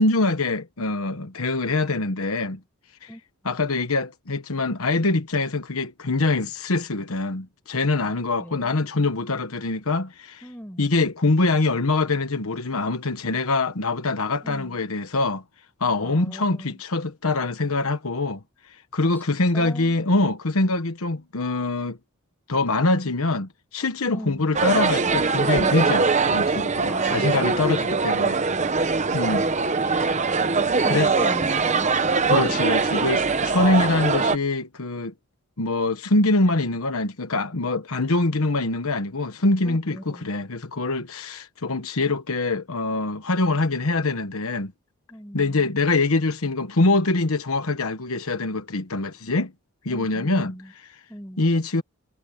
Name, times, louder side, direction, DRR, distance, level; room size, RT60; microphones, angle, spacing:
voice 1, 0.0-2.6 3.0-3.1 3.4-10.4 10.8-15.4 15.8-22.0 22.5-28.4 29.1-29.5 29.8-30.2 30.9-31.1 32.3-35.1 35.6-44.7 45.3-49.5 49.8-50.5 50.9-51.0 51.4-51.8, left 2 dB, 70° left, 1.2 m, -24 dB
voice 2, 8.0-8.8 10.4-10.9 14.4-14.8 16.0-16.8 19.0-19.1 19.5-20.0 24.1-24.5 26.9-27.9 29.7-32.5 39.6-40.3 45.1-45.8 49.9-50.7 51.1-51.5, equal, 10° left, 5.1 m, -38 dB
sound 1, 24.5-34.4, right 4 dB, 30° right, 0.9 m, -22 dB
head